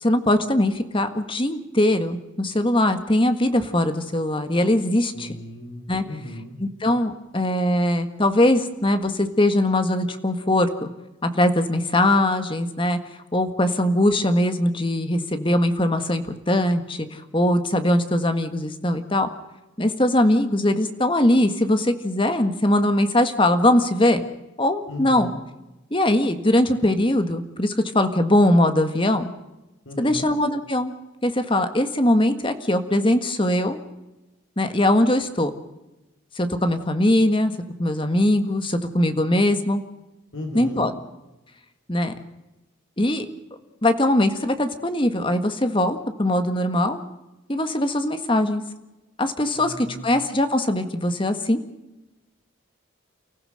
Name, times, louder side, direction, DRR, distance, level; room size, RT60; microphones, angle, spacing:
voice 1, 0.0-5.3 5.9-6.0 6.6-10.9 11.2-13.0 13.3-19.3 19.8-24.2 24.6-25.3 25.9-29.3 30.0-30.9 31.2-33.8 34.6-35.5 36.3-37.5 37.8-39.8 40.5-40.9 41.9-42.2 43.0-43.3 43.8-47.0 47.5-48.6 49.2-51.6, left 1 dB, 25° left, 8 dB, 1.7 m, -21 dB
voice 2, 5.1-6.6 24.9-25.4 29.8-30.3 40.3-40.9 49.6-50.1, equal, 85° left, 5 dB, 4.7 m, -35 dB
29.5 x 15.5 x 6.6 m, 1.0 s
head